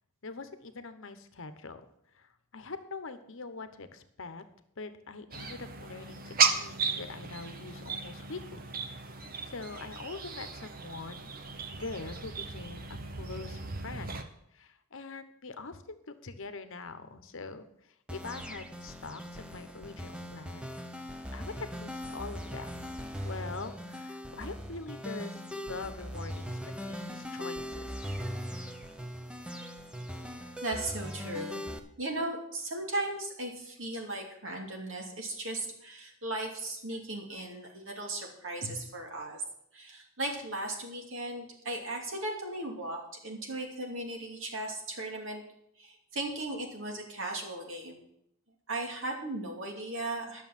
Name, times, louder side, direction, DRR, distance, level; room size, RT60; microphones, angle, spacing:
voice 1, 0.2-1.8 2.1-4.4 4.8-8.7 9.5-11.3 11.7-12.9 13.1-20.7 21.3-22.7 23.2-28.2, left 3 dB, 60° left, 10 dB, 1.0 m, -43 dB
sound 1, 5.3-14.2, right 5 dB, 40° right, 1.0 m, -35 dB
sound 2, 18.1-31.8, equal, 5° right, 0.9 m, -40 dB
voice 2, 30.6-31.6 32.0-39.4 39.7-45.4 45.8-48.0 48.7-50.4, right 2 dB, 60° right, 1 dB, 2.8 m, -37 dB
11.0 x 6.9 x 7.4 m, 0.73 s
head